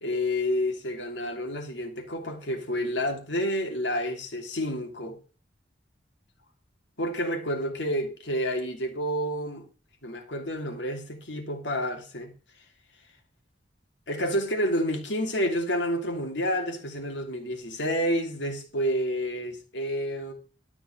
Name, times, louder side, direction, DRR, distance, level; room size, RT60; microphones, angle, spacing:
voice 1, 0.0-5.2 7.0-9.7 10.0-12.3 14.1-20.3, equal, 85° left, 2.9 m, -29 dB
12.5 x 6.1 x 6.2 m
head